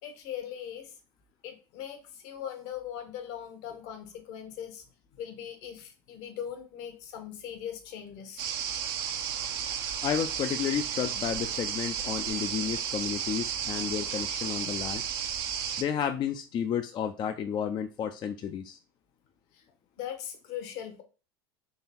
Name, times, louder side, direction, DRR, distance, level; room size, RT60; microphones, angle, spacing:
voice 1, 0.0-0.9 1.4-4.8 5.2-8.4 9.5-9.6 20.0-21.0, left 9 dB, 60° left, 6 dB, 1.2 m, -40 dB
sound 1, 8.4-15.8, right 8 dB, 70° right, 0.6 m, -33 dB
voice 2, 10.0-15.0 15.8-18.8, left 8 dB, 35° left, 7 dB, 0.4 m, -32 dB
3.9 x 2.9 x 4.3 m, 0.33 s
hypercardioid pair, 85°, 13 cm